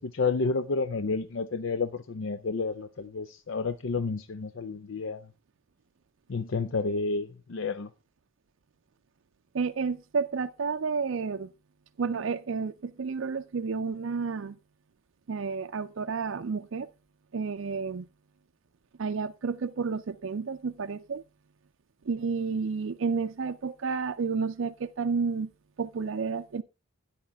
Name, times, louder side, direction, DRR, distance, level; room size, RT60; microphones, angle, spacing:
voice 1, 0.0-5.3 6.3-7.9, left 4 dB, 70° left, 0.6 m, -30 dB
voice 2, 9.5-11.5 12.0-14.6 15.3-16.9 17.3-18.1 19.0-21.2 22.1-25.5 25.8-26.6, right 5 dB, 70° right, 0.5 m, -31 dB
13.0 x 10.0 x 3.4 m
head